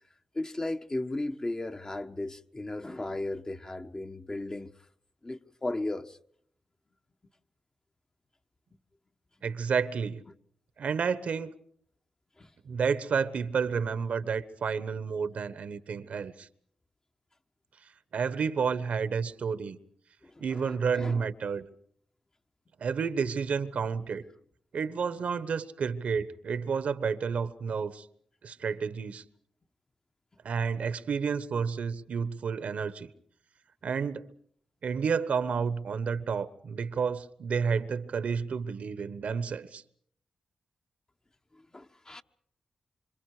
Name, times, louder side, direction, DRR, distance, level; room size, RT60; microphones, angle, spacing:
voice 1, 0.3-4.7 5.2-6.2 12.4-12.5 20.2-21.3 41.5-42.2, left 2 dB, 30° left, 1.4 m, -36 dB
voice 2, 9.4-10.2 10.8-11.5 12.6-16.5 18.1-19.8 20.4-21.7 22.8-24.2 24.7-28.1 28.4-29.2 30.4-33.1 33.8-34.3 34.8-39.8, right 6 dB, 70° right, 1.2 m, -30 dB
26.5 x 26.0 x 5.0 m
supercardioid pair, 45°, 2 cm